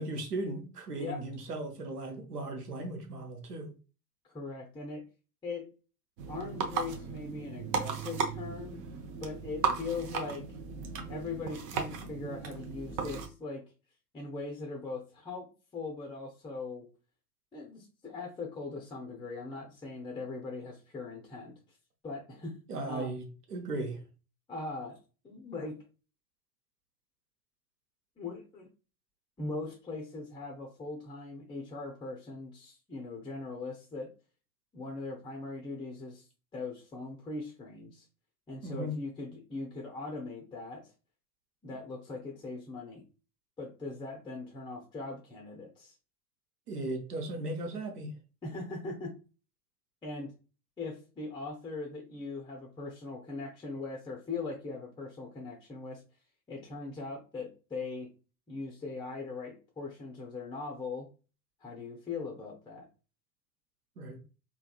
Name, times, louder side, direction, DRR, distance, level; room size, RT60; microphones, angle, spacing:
voice 1, 0.0-3.7 22.7-24.0 38.6-38.9 46.7-48.1 64.0-64.2, right 2 dB, 80° right, 0.8 m, -37 dB
voice 2, 4.2-5.0 5.4-5.7 6.3-8.8 9.2-10.4 11.1-13.6 14.1-16.9 17.5-21.6 22.0-23.2 24.5-25.0 25.2-25.7 28.2-28.7 29.4-34.1 34.7-36.2 36.5-38.0 38.5-40.9 41.6-43.0 43.6-45.9 48.4-49.2 50.0-50.3 50.8-56.0 56.5-58.1 58.5-61.1 61.6-62.9, left 3 dB, 10° left, 0.6 m, -40 dB
sound 1, 6.2-13.3, right 5 dB, 40° right, 0.6 m, -36 dB
3.5 x 2.3 x 2.2 m
figure-of-eight pair, 80°, 46 cm